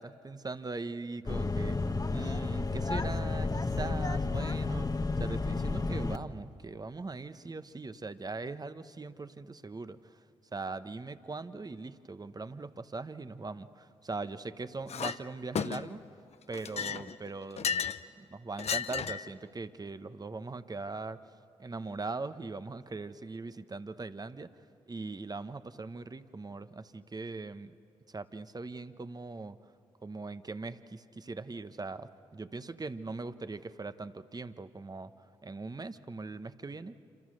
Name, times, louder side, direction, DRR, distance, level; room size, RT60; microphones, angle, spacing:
voice 1, 0.0-1.8 2.1-4.9 5.2-10.2 10.5-16.0 16.5-17.7 18.2-21.2 21.6-24.5 24.9-27.7 28.1-29.6 30.0-35.1 35.4-36.9, right 3 dB, 30° right, 12 dB, 1.0 m, -40 dB
sound 1, 1.3-6.2, left 3 dB, 30° left, 1.2 m, -31 dB
Chink clink, 14.9-15.2 15.5-16.1 16.5-18.0 18.6-19.3, left 7 dB, 55° left, 0.7 m, -34 dB
27.5 x 26.5 x 6.4 m, 2.4 s
hypercardioid pair, 45°, 13 cm